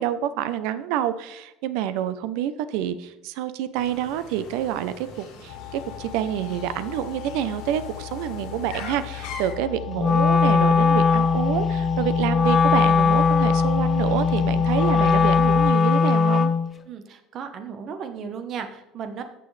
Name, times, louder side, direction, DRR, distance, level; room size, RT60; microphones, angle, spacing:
voice 1, 0.0-16.5, right 10 dB, 75° right, 13 dB, 0.7 m, -28 dB
sound 1, 3.8-9.5, left 4 dB, 70° left, 3.7 m, -42 dB
sound 2, 5.5-15.7, left 16 dB, 85° left, 0.4 m, -33 dB
Wind instrument woodwind instrument, 10.0-16.7, left 5 dB, 25° left, 0.4 m, -20 dB
voice 2, 16.8-19.2, right 6 dB, 40° right, 7 dB, 1.2 m, -35 dB
15.0 x 6.2 x 3.3 m, 0.90 s
cardioid pair, 165°, 0 cm